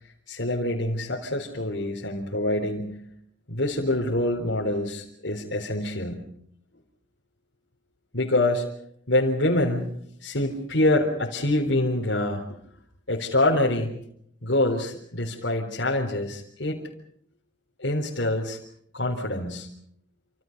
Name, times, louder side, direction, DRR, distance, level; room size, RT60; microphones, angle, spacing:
voice 1, 0.3-3.0 3.5-6.3 8.1-8.7 9.1-9.9 10.2-12.4 13.1-13.9 14.4-16.8 17.8-18.6 18.9-19.7, left 1 dB, 80° left, -2 dB, 3.8 m, -25 dB
28.5 x 27.0 x 5.3 m, 0.68 s
head